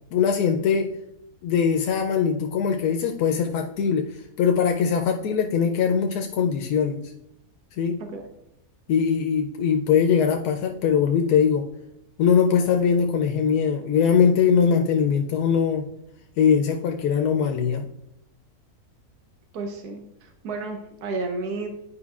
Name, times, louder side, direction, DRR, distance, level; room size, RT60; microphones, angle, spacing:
voice 1, 0.1-0.9 1.4-4.1 4.4-7.0 7.8-8.0 8.9-11.7 12.2-15.8 16.4-17.9, left 7 dB, 90° left, 3 dB, 1.1 m, -21 dB
voice 2, 19.5-21.7, right 3 dB, 85° right, 4 dB, 1.3 m, -32 dB
9.9 x 5.0 x 2.4 m, 0.79 s
omnidirectional pair, 1.6 m